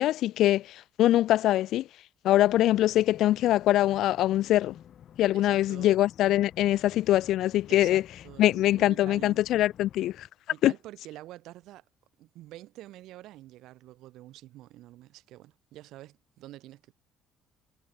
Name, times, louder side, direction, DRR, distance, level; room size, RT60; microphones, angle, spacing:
voice 1, 0.0-1.9 2.2-4.8 5.2-8.0 8.4-10.3 10.6-10.7, left 14 dB, 65° left, 0.5 m, -23 dB
sound 1, 2.4-10.3, left 9 dB, 45° left, 3.3 m, -51 dB
voice 2, 5.3-6.1 7.7-9.4 10.5-11.8 12.2-16.9, right 15 dB, 75° right, 7.2 m, -47 dB
cardioid pair, 150°, 0 cm